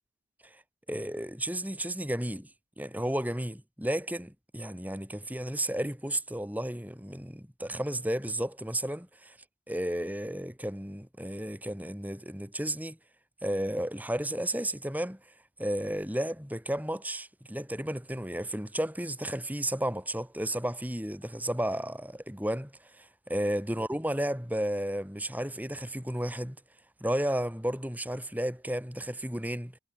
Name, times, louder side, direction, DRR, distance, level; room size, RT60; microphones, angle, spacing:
voice 1, 0.9-2.5 2.8-9.4 9.7-13.0 13.4-15.3 15.6-26.6 27.0-29.8, right 1 dB, 10° right, 7.5 m, -33 dB
head